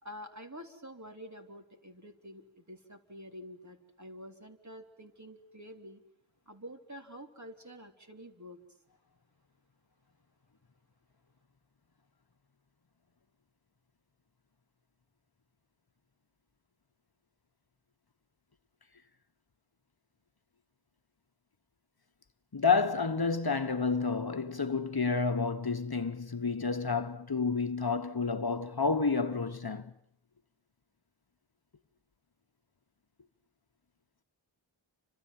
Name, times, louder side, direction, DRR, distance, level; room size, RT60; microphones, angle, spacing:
voice 1, 0.0-6.0 6.5-8.6, equal, 35° right, 3.6 m, -48 dB
voice 2, 22.5-29.9, left 4 dB, 50° left, 1.3 m, -30 dB
30.0 x 26.0 x 7.6 m
wide cardioid pair, 50°, 48 cm